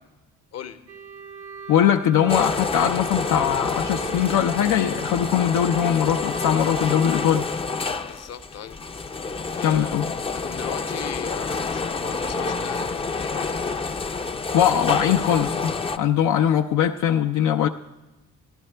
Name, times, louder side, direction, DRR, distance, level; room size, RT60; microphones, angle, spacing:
sound 1, 0.9-7.3, right 5 dB, 80° right, 1.0 m, -39 dB
voice 1, 1.7-7.5 9.6-10.1 14.5-17.7, left 9 dB, 80° left, 4 dB, 0.5 m, -21 dB
sound 2, 2.3-16.0, left 4 dB, 20° left, 0.4 m, -28 dB
voice 2, 8.1-8.8 9.5-10.0 10.3-13.9, left 9 dB, 55° left, 8 dB, 0.8 m, -38 dB
14.5 x 11.5 x 3.3 m, 1.1 s
cardioid pair, 90°, 30 cm